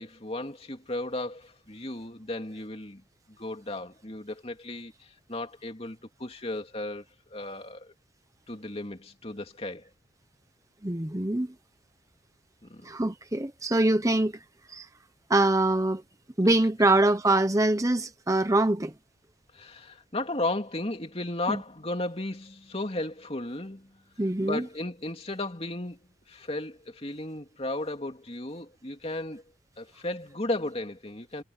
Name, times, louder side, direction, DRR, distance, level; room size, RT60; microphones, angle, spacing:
voice 1, 0.0-3.0 3.4-7.0 7.3-7.9 8.5-9.9 12.6-13.0 19.5-24.0 24.4-26.0 26.3-29.4 29.8-31.4, left 2 dB, 30° left, 2.8 m, -35 dB
voice 2, 10.8-11.5 12.8-14.3 14.7-14.9 15.3-16.0 16.4-18.9 21.5-21.6 24.2-24.6, right 2 dB, 15° right, 0.9 m, -24 dB
head